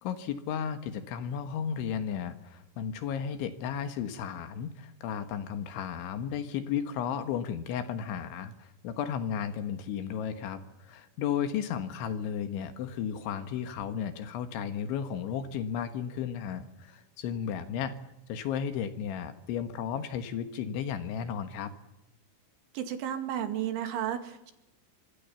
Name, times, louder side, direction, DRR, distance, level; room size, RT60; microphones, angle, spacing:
voice 1, 0.0-17.9 18.3-21.7, left 8 dB, 70° left, 10 dB, 3.6 m, -34 dB
voice 2, 22.7-24.5, right 10 dB, 70° right, 8 dB, 4.5 m, -33 dB
25.5 x 25.5 x 7.1 m, 0.93 s
omnidirectional pair, 6.0 m